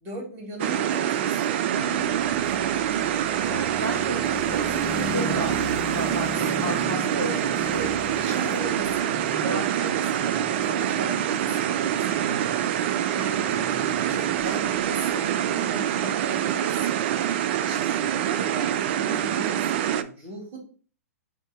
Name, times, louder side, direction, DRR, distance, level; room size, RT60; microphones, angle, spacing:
voice 1, 0.0-2.3 3.4-3.7 6.5-7.3 8.2-9.1 9.4-17.1 17.6-20.6, right 2 dB, 25° right, 0 dB, 1.9 m, -38 dB
sound 1, 0.6-20.0, right 10 dB, 45° right, 0.3 m, -25 dB
voice 2, 1.6-2.3 2.6-3.1 3.5-5.6 5.9-6.3 6.6-8.6 9.4-9.9, right 1 dB, 85° right, -2 dB, 1.0 m, -35 dB
sound 2, 1.8-14.9, left 2 dB, 5° right, 0.7 m, -38 dB
3.5 x 2.7 x 4.6 m, 0.40 s
figure-of-eight pair, 115°, 8 cm